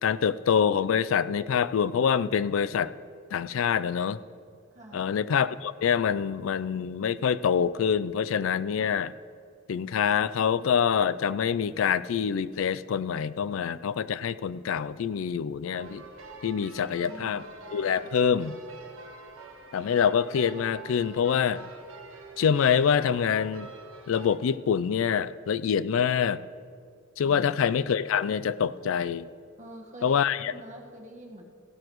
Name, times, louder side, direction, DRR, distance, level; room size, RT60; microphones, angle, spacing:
voice 1, 0.0-2.9 3.3-4.2 4.9-9.1 9.7-16.0 16.4-17.4 17.7-18.6 19.7-21.6 22.4-23.7 24.1-26.4 27.2-29.3 30.0-30.5, left 7 dB, 70° left, 17 dB, 0.4 m, -25 dB
voice 2, 4.7-5.1 16.7-17.4 27.3-27.5 29.6-31.4, right 1 dB, 35° right, -1 dB, 1.5 m, -45 dB
sound 1, 15.7-24.4, right 4 dB, 80° right, 1.4 m, -46 dB
16.0 x 12.5 x 3.1 m, 2.2 s
head